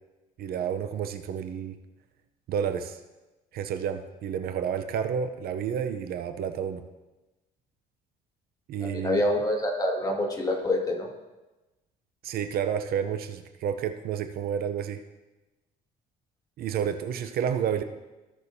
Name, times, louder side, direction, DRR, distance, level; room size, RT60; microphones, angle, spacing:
voice 1, 0.4-1.8 2.5-3.0 3.5-6.8 8.7-9.2 12.2-15.0 16.6-17.8, right 8 dB, 65° right, 8 dB, 0.7 m, -30 dB
voice 2, 8.8-11.1, left 1 dB, 20° left, -1 dB, 2.0 m, -26 dB
16.5 x 6.3 x 2.8 m, 1.1 s
cardioid pair, 110°, 17 cm